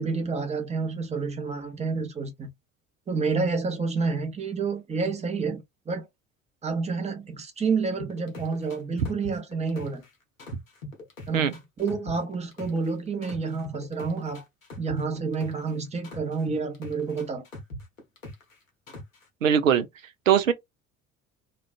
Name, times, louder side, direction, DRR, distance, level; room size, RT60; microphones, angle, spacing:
voice 1, 0.0-2.5 3.1-6.0 6.6-10.0 11.3-14.4 14.8-17.4, right 4 dB, 15° right, 0.8 m, -29 dB
sound 1, 8.0-10.1 10.4-12.9 13.2-15.7 16.0-18.5 18.9-19.2, left 1 dB, 85° left, 0.8 m, -41 dB
voice 2, 19.4-19.9 20.3-20.5, right 8 dB, 80° right, 0.5 m, -20 dB
2.4 x 2.2 x 2.4 m
figure-of-eight pair, 60°, 39 cm